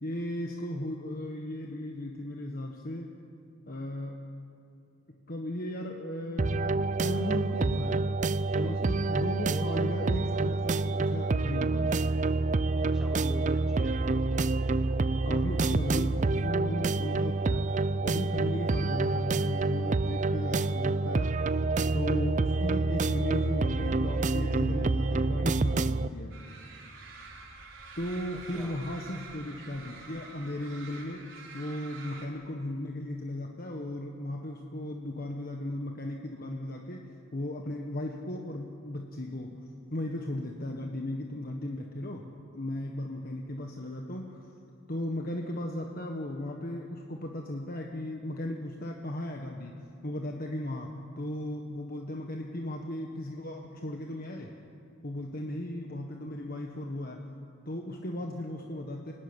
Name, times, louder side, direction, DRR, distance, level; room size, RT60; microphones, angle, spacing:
voice 1, 0.0-3.1 3.7-4.2 5.3-8.2 8.5-12.1 15.2-17.7 18.0-21.3 21.9-26.3 28.0-31.3 31.5-39.6 39.9-44.4 44.9-54.6 55.0-57.2 57.6-59.1, left 1 dB, 50° left, 2 dB, 1.5 m, -36 dB
sound 1, 6.4-26.1, right 3 dB, 40° right, 0.5 m, -27 dB
voice 2, 8.5-9.1 9.4-9.9 12.9-14.0 28.5-28.8, equal, 5° right, 1 dB, 1.4 m, -43 dB
sound 2, 26.3-32.3, right 3 dB, 75° right, 4.1 m, -47 dB
25.5 x 16.0 x 9.9 m, 2.5 s
head